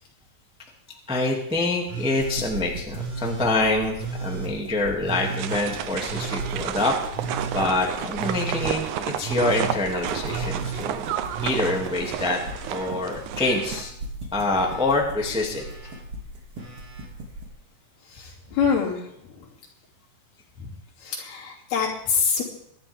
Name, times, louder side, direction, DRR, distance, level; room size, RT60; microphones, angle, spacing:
voice 1, 1.1-6.9 7.5-8.8 9.2-11.1 11.4-12.4 12.7-13.9 14.3-15.6, left 2 dB, 5° right, 0 dB, 1.2 m, -25 dB
Telephone, 1.9-2.4 2.9-3.5 4.0-4.5 5.0-5.6 6.1-6.6 7.1-7.7 8.2-8.7 9.2-9.8 10.2-10.8 11.3-12.9 13.1-13.9 14.5-15.0 15.5-16.0 16.6-17.1 18.3-18.4, right 5 dB, 20° right, 2.2 m, -34 dB
sound 1, 2.1-17.5, right 1 dB, 45° right, 3.2 m, -39 dB
sound 2, 5.4-13.8, right 10 dB, 85° right, 1.7 m, -31 dB
voice 2, 18.0-19.5 20.6-20.7 21.0-22.4, left 6 dB, 85° left, -3 dB, 4.9 m, -26 dB
22.5 x 11.0 x 3.6 m, 0.74 s
omnidirectional pair, 4.5 m